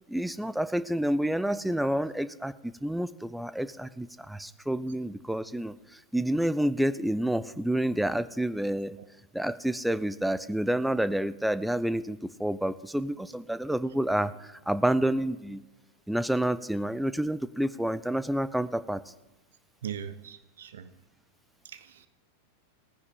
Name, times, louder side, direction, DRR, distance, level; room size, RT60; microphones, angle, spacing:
voice 1, 0.1-2.5 2.8-5.7 6.1-9.0 9.3-15.6 16.1-19.0, right 1 dB, ahead, 0.5 m, -29 dB
voice 2, 19.8-20.9 21.6-22.1, right 9 dB, 60° right, 0.8 m, -40 dB
18.5 x 9.5 x 3.7 m
figure-of-eight pair, 90°, 0 cm